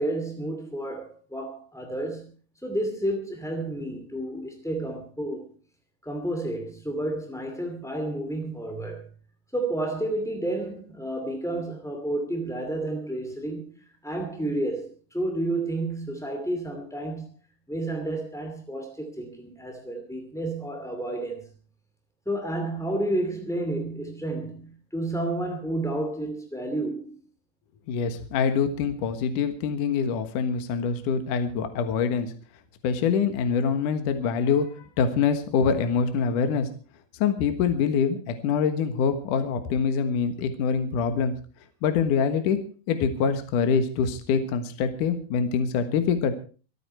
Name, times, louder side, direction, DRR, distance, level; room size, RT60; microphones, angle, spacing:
voice 1, 0.0-2.3 2.6-5.5 6.0-9.1 9.5-17.3 17.7-21.5 22.2-27.2, right 1 dB, ahead, 0.7 m, -31 dB
voice 2, 27.9-32.3 32.8-34.7 35.0-36.7 37.2-41.3 41.8-42.6 42.9-46.3, left 6 dB, 60° left, 2.4 m, -25 dB
26.0 x 9.1 x 4.5 m
omnidirectional pair, 5.1 m